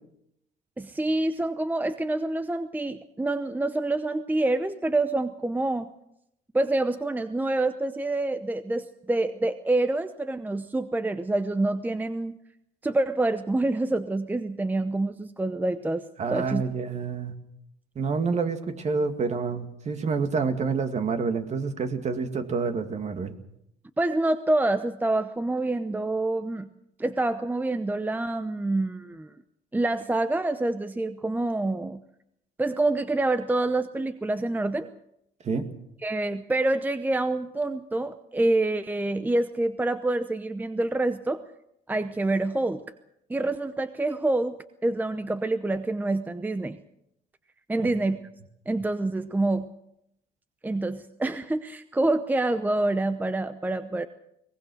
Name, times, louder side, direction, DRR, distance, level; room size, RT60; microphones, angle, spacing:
voice 1, 0.8-5.9 6.5-12.3 12.8-16.0 16.3-16.6 24.0-26.7 27.0-29.3 29.7-32.0 32.6-34.9 36.0-41.4 41.9-42.8 43.3-46.8 47.7-48.2 48.7-49.7 50.6-54.1, right 2 dB, 10° right, 11 dB, 0.8 m, -27 dB
voice 2, 16.2-17.3 18.0-23.3 35.4-35.7 47.8-47.9, right 5 dB, 40° right, 7 dB, 2.3 m, -28 dB
22.5 x 19.5 x 6.4 m, 0.79 s
cardioid pair, 110°, 17 cm